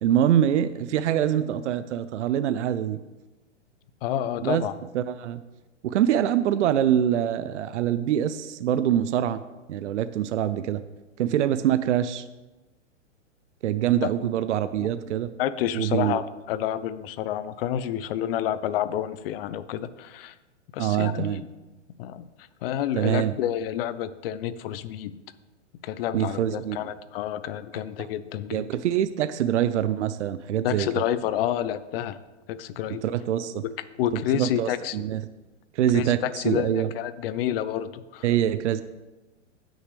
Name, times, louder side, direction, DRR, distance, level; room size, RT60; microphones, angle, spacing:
voice 1, 0.0-3.0 4.4-4.6 4.9-5.4 5.8-9.4 9.7-10.8 11.2-12.3 13.6-15.3 15.7-16.2 20.8-21.4 23.0-23.3 26.1-26.8 28.5-31.0 33.0-33.6 34.1-35.2 35.7-36.9 38.2-38.8, right 10 dB, 70° right, 12 dB, 0.7 m, -24 dB
voice 2, 4.0-4.7 14.0-14.1 14.8-14.9 15.4-20.3 20.7-21.4 22.0-25.1 25.8-28.7 30.6-32.2 32.5-33.0 34.0-35.0 35.9-38.2, left 11 dB, 50° left, 14 dB, 0.7 m, -29 dB
17.0 x 6.5 x 3.4 m, 1.1 s
hypercardioid pair, 120°, 37 cm